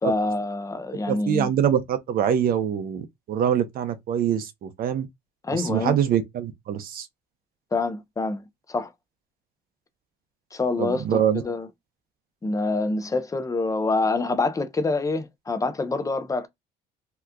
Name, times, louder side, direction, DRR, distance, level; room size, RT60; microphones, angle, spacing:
voice 1, 0.0-1.5 5.4-6.0 7.7-8.9 10.5-11.7 12.4-16.5, left 3 dB, 20° left, 0.7 m, -26 dB
voice 2, 1.1-5.1 5.5-7.1 10.8-11.4, right 9 dB, 60° right, 0.7 m, -24 dB
2.9 x 2.3 x 3.4 m
cardioid pair, 110°, 17 cm